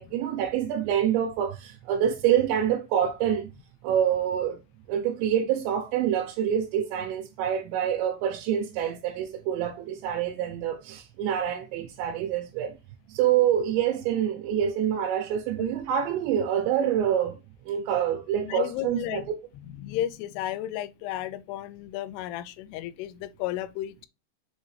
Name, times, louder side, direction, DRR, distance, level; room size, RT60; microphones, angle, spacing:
voice 1, 0.0-3.5 3.8-4.6 4.9-12.7 13.1-17.4 17.6-19.4, right 9 dB, 90° right, 3.1 m, -26 dB
voice 2, 18.4-19.3 19.6-24.1, left 13 dB, 80° left, 2.5 m, -33 dB
7.2 x 4.1 x 3.2 m
omnidirectional pair, 5.0 m